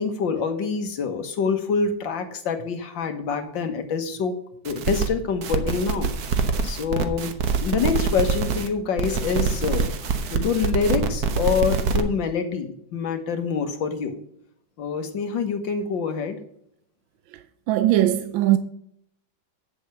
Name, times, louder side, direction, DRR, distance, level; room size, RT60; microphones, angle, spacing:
voice 1, 0.0-4.4 4.6-9.9 10.3-14.2 14.8-16.4, left 5 dB, 70° left, 2.0 m, -26 dB
sound 1, 4.6-5.1 5.4-8.7 9.0-12.0, right 5 dB, 55° right, 1.3 m, -25 dB
voice 2, 17.7-18.6, right 13 dB, 80° right, 1.3 m, -19 dB
8.5 x 7.1 x 6.6 m
omnidirectional pair, 2.1 m